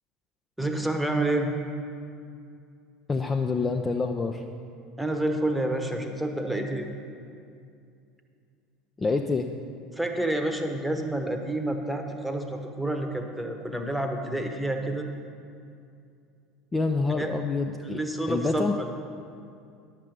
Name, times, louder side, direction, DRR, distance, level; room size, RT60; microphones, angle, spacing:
voice 1, 0.6-1.5 5.0-6.9 9.9-15.1 17.1-17.3 18.0-18.7, right 1 dB, ahead, 4 dB, 1.1 m, -28 dB
voice 2, 3.1-4.4 9.0-9.5 16.7-18.0 18.3-18.8, left 4 dB, 20° left, 4 dB, 0.5 m, -26 dB
11.0 x 7.5 x 5.3 m, 2.4 s
figure-of-eight pair, 70°, 0 cm